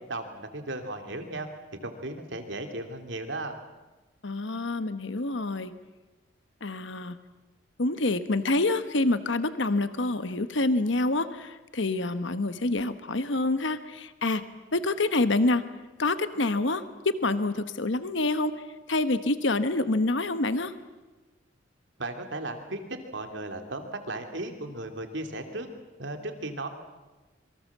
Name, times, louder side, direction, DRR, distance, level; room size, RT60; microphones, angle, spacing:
voice 1, 0.1-1.5 1.8-3.6 22.0-25.7 26.0-26.7, right 2 dB, 65° right, 5 dB, 2.8 m, -36 dB
voice 2, 4.2-5.7 6.6-7.2 7.8-14.4 14.7-15.6 16.0-20.7, left 2 dB, 65° left, 11 dB, 1.1 m, -27 dB
27.0 x 23.5 x 7.4 m, 1.2 s
head